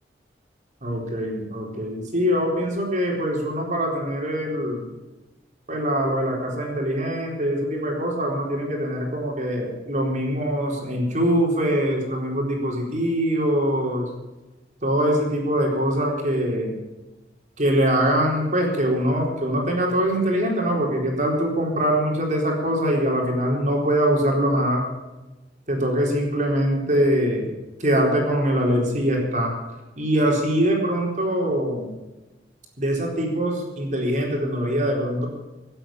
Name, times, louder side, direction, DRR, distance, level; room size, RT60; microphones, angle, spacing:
voice 1, 0.8-4.8 5.7-14.1 14.8-16.8 17.6-24.8 25.7-27.5 27.8-29.5 30.0-31.9 32.8-35.3, equal, 45° right, 0 dB, 4.2 m, -23 dB
18.0 x 8.9 x 7.3 m, 1.1 s
head